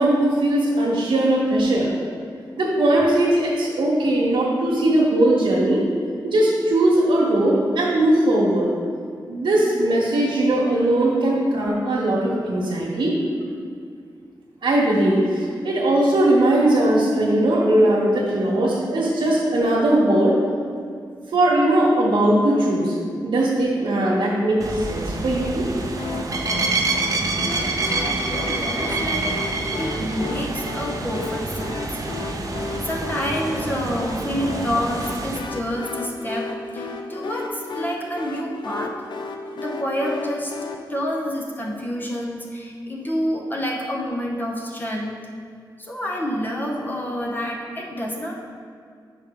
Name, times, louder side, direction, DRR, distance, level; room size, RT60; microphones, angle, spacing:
voice 1, 0.0-1.9 2.6-5.9 6.2-8.7 9.3-13.1 14.6-20.4 21.3-22.9 23.2-25.7, right 1 dB, 85° right, -6 dB, 1.1 m, -19 dB
sound 1, 24.6-35.4, right 3 dB, 45° right, 0.6 m, -27 dB
sound 2, 26.0-40.8, left 3 dB, 70° left, 0.5 m, -34 dB
voice 2, 27.3-32.6 32.8-39.0 39.5-40.5 40.9-45.2 45.8-48.3, equal, 25° left, -1 dB, 0.7 m, -28 dB
5.8 x 4.5 x 5.2 m, 2.2 s
wide cardioid pair, 145°, 8 cm